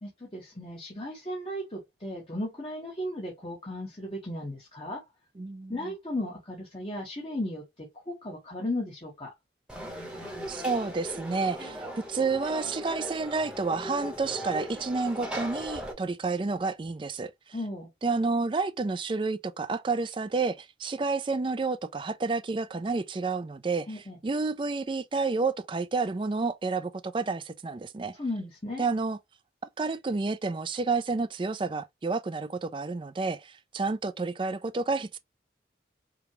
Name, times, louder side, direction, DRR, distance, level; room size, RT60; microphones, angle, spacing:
voice 1, 0.0-5.0 5.7-9.3 17.5-17.9 23.9-24.2 28.2-28.9, left 1 dB, 30° left, 1.2 m, -35 dB
voice 2, 5.4-5.9 10.5-17.5 18.0-23.9 24.2-28.2 28.8-29.2 29.8-35.2, right 4 dB, 25° right, 0.3 m, -30 dB
Conversation / Crowd, 9.7-15.9, equal, 5° right, 1.0 m, -38 dB
5.1 x 2.3 x 3.0 m
head